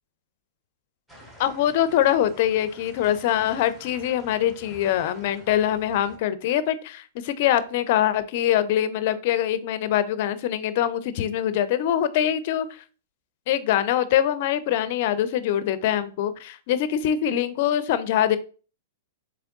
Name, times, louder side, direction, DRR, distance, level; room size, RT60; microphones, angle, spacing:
sound 1, 1.1-6.2, left 1 dB, 10° right, 1.5 m, -48 dB
voice 1, 1.4-12.8 13.5-18.4, left 11 dB, 55° left, 14 dB, 0.5 m, -23 dB
3.5 x 3.3 x 3.7 m, 0.38 s
hypercardioid pair, 125°, 0 cm